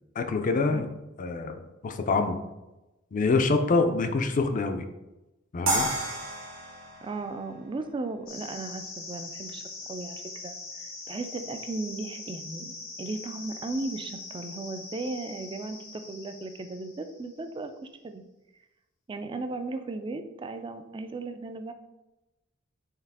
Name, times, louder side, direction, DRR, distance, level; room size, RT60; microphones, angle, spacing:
voice 1, 0.2-0.9 1.2-2.4 3.1-4.9 5.5-5.9, left 3 dB, 40° left, 7 dB, 0.4 m, -26 dB
voice 2, 3.8-4.2 7.0-9.6 9.9-12.7 13.0-17.7 18.0-18.2 19.1-21.7, right 3 dB, 25° right, 8 dB, 0.3 m, -36 dB
sound 1, 5.7-8.7, right 2 dB, 80° right, 1.1 m, -32 dB
sound 2, 8.3-17.4, left 3 dB, 90° left, 1.0 m, -42 dB
4.6 x 3.3 x 3.5 m, 0.99 s
head